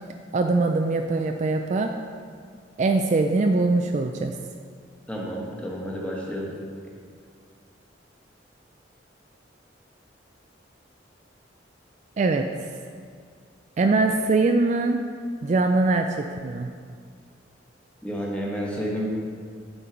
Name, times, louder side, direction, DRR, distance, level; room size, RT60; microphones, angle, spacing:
voice 1, 0.3-1.9 2.8-4.4 12.2-12.5 13.8-15.0 15.4-16.7, right 3 dB, 40° right, 5 dB, 0.3 m, -22 dB
voice 2, 5.1-6.5 18.0-19.1, equal, 5° left, -3 dB, 1.2 m, -30 dB
8.4 x 5.4 x 4.5 m, 2.1 s
head